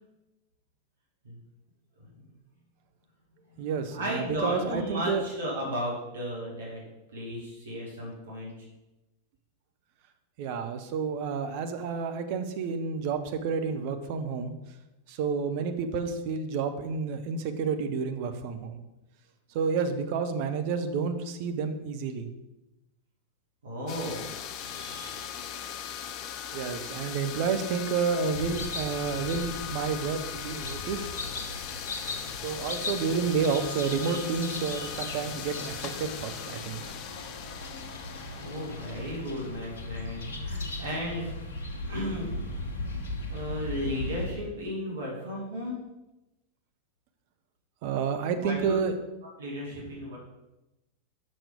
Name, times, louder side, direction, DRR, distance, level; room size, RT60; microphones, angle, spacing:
voice 1, 2.0-2.3 3.5-3.7 3.9-6.8 7.1-8.7 23.6-25.4 38.3-41.3 41.9-42.3 43.3-45.8 48.4-48.8 49.4-50.2, equal, 65° right, -3 dB, 2.3 m, -35 dB
voice 2, 3.6-5.2 10.4-14.5 15.1-18.8 19.5-22.3 26.5-31.1 32.4-36.8 47.8-48.9, right 5 dB, 45° right, 7 dB, 0.8 m, -30 dB
sound 1, 23.9-39.6, left 8 dB, 40° left, 0.6 m, -39 dB
sound 2, 28.3-44.3, left 2 dB, 60° left, 1.2 m, -38 dB
6.4 x 6.1 x 5.2 m, 0.98 s
figure-of-eight pair, 90°, 0 cm